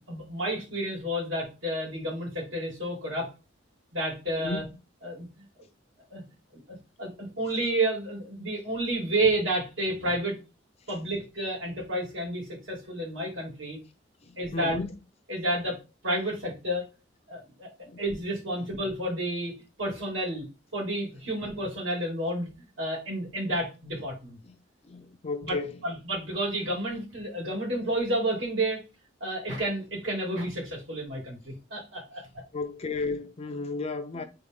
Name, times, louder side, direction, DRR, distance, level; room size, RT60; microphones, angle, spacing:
voice 1, 0.1-3.3 3.9-4.6 5.0-5.4 6.1-6.2 6.5-6.6 7.0-10.4 10.9-13.8 14.4-14.8 15.3-15.8 16.0-16.9 17.3-17.7 18.0-20.5 20.7-24.4 25.4-25.6 25.8-28.8 29.2-32.2 34.1-34.3, right 1 dB, 80° right, 2.4 m, -30 dB
voice 2, 4.3-4.7 14.2-15.0 17.9-18.0 18.6-18.7 24.5-24.6 24.8-25.8 32.5-34.2, left 3 dB, 30° left, 0.4 m, -34 dB
3.8 x 3.1 x 3.6 m
head